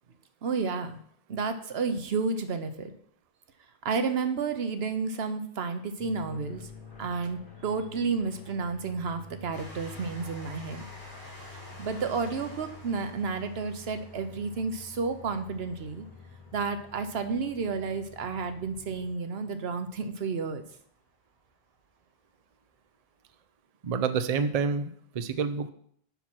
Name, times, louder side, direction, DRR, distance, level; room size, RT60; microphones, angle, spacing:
voice 1, 0.4-1.0 1.3-2.9 3.8-6.7 7.0-10.8 11.8-16.1 16.5-20.6, right 4 dB, 80° right, 8 dB, 1.1 m, -31 dB
sound 1, 6.0-19.1, left 4 dB, 35° left, 3.4 m, -48 dB
Train, 9.5-20.7 21.4-21.5 21.7-21.8, equal, 20° right, 3.4 m, -51 dB
voice 2, 23.8-25.7, right 5 dB, 45° right, 10 dB, 0.6 m, -28 dB
7.1 x 5.8 x 6.0 m, 0.65 s
omnidirectional pair, 1.0 m